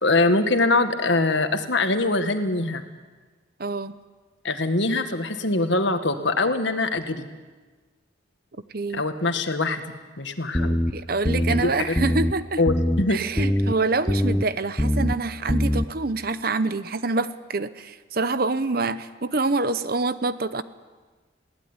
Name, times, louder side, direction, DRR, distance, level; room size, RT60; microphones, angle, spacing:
voice 1, 0.0-2.8 4.4-7.3 8.9-10.7 11.5-12.0 12.6-13.2, left 2 dB, 65° left, 8 dB, 1.8 m, -23 dB
voice 2, 3.6-4.0 8.7-9.0 10.6-12.6 13.1-20.6, right 3 dB, 50° right, 13 dB, 0.8 m, -26 dB
sound 1, 10.5-10.9 11.2-11.6 12.0-12.3 12.7-13.0 13.4-13.7 14.1-14.4 14.8-15.1 15.5-15.9, left 1 dB, 10° left, 0.7 m, -22 dB
21.0 x 17.5 x 9.8 m, 1.4 s
head